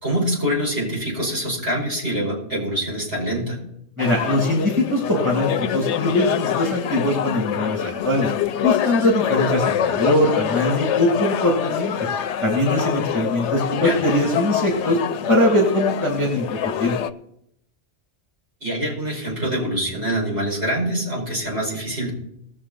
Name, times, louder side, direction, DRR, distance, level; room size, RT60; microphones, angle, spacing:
voice 1, 0.0-3.6 13.8-14.0 18.6-22.1, equal, 60° right, -5 dB, 5.6 m, -25 dB
sound 1, 4.0-17.1, left 9 dB, 75° left, 0.9 m, -25 dB
voice 2, 4.0-8.3 8.6-11.9 12.4-15.0 15.3-16.5 16.8-16.9, left 1 dB, 15° right, -1 dB, 2.7 m, -21 dB
19.5 x 6.9 x 4.3 m, 0.74 s
omnidirectional pair, 1.2 m